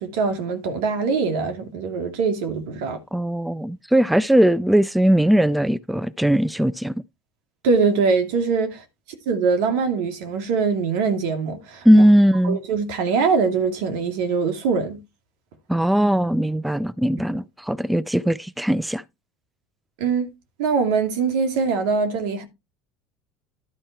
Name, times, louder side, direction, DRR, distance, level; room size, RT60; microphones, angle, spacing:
voice 1, 0.0-3.0 7.6-8.8 9.3-11.8 12.4-15.0 20.0-20.3 20.6-22.5, right 5 dB, 75° right, 2.2 m, -22 dB
voice 2, 3.1-6.9 11.8-12.6 15.7-19.0, equal, 5° right, 0.4 m, -19 dB
11.5 x 4.4 x 4.6 m
hypercardioid pair, 80°, 0 cm